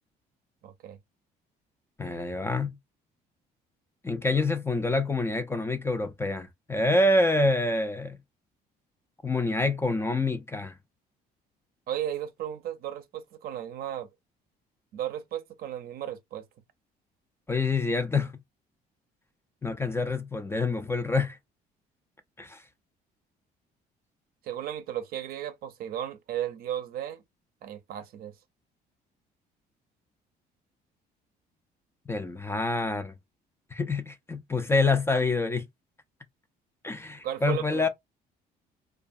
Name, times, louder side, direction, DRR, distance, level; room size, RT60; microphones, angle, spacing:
voice 1, 0.6-1.0 11.9-14.1 14.9-16.4 24.4-27.2 27.6-28.3 37.2-37.9, right 11 dB, 60° right, 0.5 m, -35 dB
voice 2, 2.0-2.8 4.0-8.2 9.2-10.7 17.5-18.3 19.6-21.4 22.4-22.6 32.1-33.1 33.7-35.6 36.8-37.9, left 2 dB, 15° left, 0.3 m, -27 dB
2.3 x 2.3 x 2.5 m
cardioid pair, 110°, 17 cm